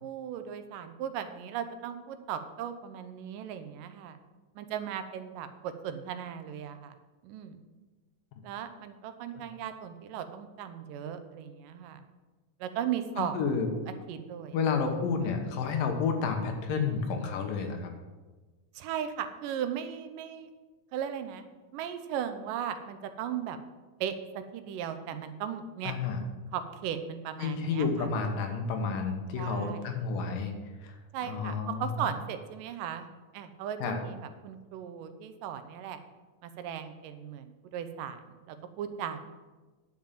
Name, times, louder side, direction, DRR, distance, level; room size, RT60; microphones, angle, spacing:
voice 1, 0.0-4.2 4.6-7.0 7.2-7.6 8.4-12.0 12.6-13.4 14.1-14.6 18.8-20.5 20.9-21.5 21.7-23.6 24.0-25.9 26.5-28.1 29.4-29.9 31.1-33.1 33.3-34.2 34.4-36.0 36.4-39.3, right 9 dB, 80° right, 9 dB, 2.3 m, -37 dB
voice 2, 13.2-13.7 14.5-17.9 25.8-26.2 27.4-30.5 30.8-31.0 31.3-31.9 33.8-34.0, left 5 dB, 80° left, 4 dB, 2.9 m, -30 dB
10.5 x 5.7 x 7.4 m, 1.3 s
omnidirectional pair, 3.9 m